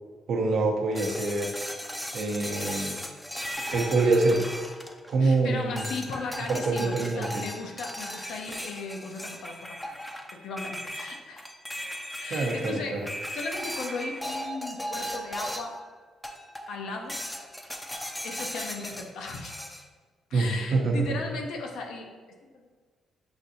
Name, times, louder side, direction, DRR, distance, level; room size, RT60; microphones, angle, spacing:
voice 1, 0.3-1.5 2.1-3.0 3.5-4.5 5.1-5.8 6.5-7.4 12.3-13.0 20.3-21.2, right 3 dB, 70° right, 0 dB, 0.7 m, -25 dB
sound 1, 1.0-5.3 5.8-15.8 16.2-16.7 17.1-19.8, equal, 5° left, 0.4 m, -37 dB
voice 2, 5.2-10.0 10.3-11.5 12.2-13.1 13.3-15.7 16.7-17.2 18.2-19.8 20.3-22.1, left 3 dB, 80° left, 2 dB, 0.6 m, -37 dB
5.9 x 2.6 x 2.7 m, 1.5 s
cardioid pair, 90°, 0 cm